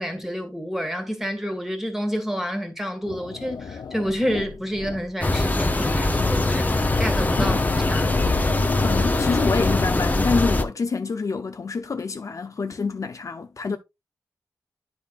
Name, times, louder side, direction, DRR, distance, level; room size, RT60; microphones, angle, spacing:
voice 1, 0.0-7.6 7.9-8.1, equal, 5° right, 1.8 m, -29 dB
sound 1, 3.0-9.8, left 6 dB, 90° left, 0.7 m, -34 dB
sound 2, 5.2-10.6, left 2 dB, 25° left, 0.8 m, -22 dB
voice 2, 7.4-7.7 8.8-13.8, left 4 dB, 50° left, 0.6 m, -27 dB
10.5 x 5.5 x 2.5 m
wide cardioid pair, 115°, 7 cm